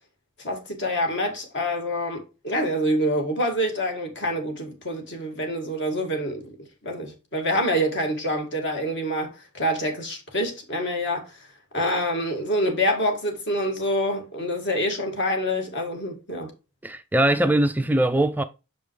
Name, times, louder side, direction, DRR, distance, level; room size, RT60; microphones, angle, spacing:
voice 1, 0.4-6.5 6.8-11.4 11.7-16.5, equal, 55° left, 2.1 m, -26 dB
voice 2, 16.8-18.4, right 1 dB, 10° right, 0.3 m, -21 dB
6.5 x 5.3 x 3.1 m
head